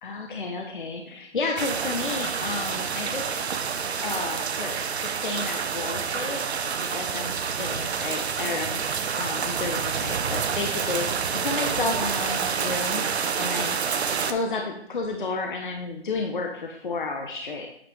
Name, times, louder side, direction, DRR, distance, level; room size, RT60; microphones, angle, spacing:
voice 1, 0.0-3.5 4.0-8.8 9.2-13.0 13.3-13.8 14.2-17.7, left 3 dB, 50° left, 3 dB, 0.8 m, -32 dB
sound 1, 1.6-14.3, right 6 dB, 70° right, 0.7 m, -28 dB
8.8 x 5.4 x 3.1 m, 0.70 s
hypercardioid pair, 175°, 33 cm